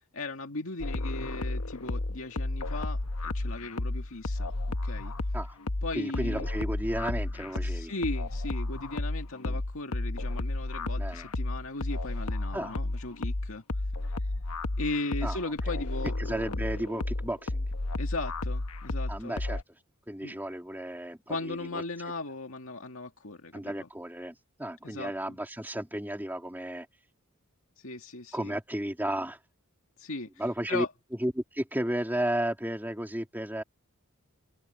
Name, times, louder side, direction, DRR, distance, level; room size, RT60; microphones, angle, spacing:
voice 1, 0.1-5.1 5.8-6.5 7.6-13.6 14.2-14.3 14.8-16.1 18.0-19.4 20.2-20.4 21.3-23.9 24.8-25.3 27.8-28.5 30.0-30.3 30.7-30.9, left 2 dB, 65° left, 2.1 m, -37 dB
sound 1, 0.8-19.6, left 2 dB, 90° left, 1.1 m, -32 dB
voice 2, 5.9-7.9 9.4-9.6 11.0-11.3 12.5-12.7 15.2-15.4 16.2-17.6 19.1-19.6 20.1-21.8 23.5-26.9 28.3-29.4 30.4-30.8 31.2-33.6, right 1 dB, 10° right, 3.1 m, -33 dB
head